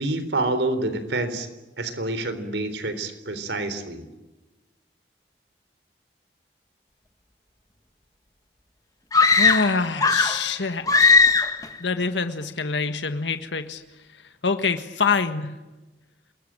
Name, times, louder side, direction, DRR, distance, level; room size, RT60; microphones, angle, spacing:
voice 1, 0.0-1.5 1.8-4.0, right 2 dB, 80° right, 11 dB, 3.8 m, -27 dB
sound 1, 9.1-10.5 10.9-11.7, left 4 dB, 20° left, 1.9 m, -18 dB
voice 2, 9.4-11.3 11.8-13.8 14.1-15.6, left 4 dB, 85° left, 8 dB, 1.5 m, -26 dB
28.5 x 21.5 x 8.9 m, 1.1 s
head